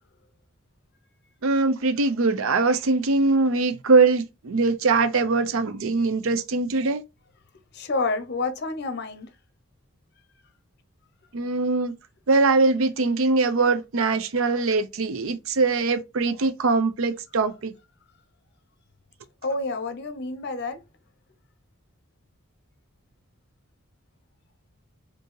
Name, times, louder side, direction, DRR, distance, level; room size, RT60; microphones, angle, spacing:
voice 1, 1.4-7.0 11.3-11.9 12.3-17.7, right 3 dB, 70° right, 0.5 m, -22 dB
voice 2, 7.7-9.3 19.4-20.8, left 3 dB, 50° left, 0.7 m, -29 dB
4.4 x 2.7 x 3.1 m
head